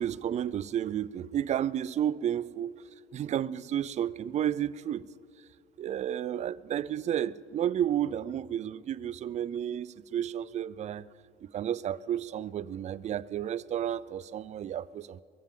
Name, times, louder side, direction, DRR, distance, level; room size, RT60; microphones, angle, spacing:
voice 1, 0.0-2.7 3.1-5.1 5.8-11.1 11.5-15.2, right 10 dB, 45° right, 20 dB, 0.4 m, -32 dB
23.0 x 15.0 x 3.7 m, 2.4 s
cardioid pair, 110°, 17 cm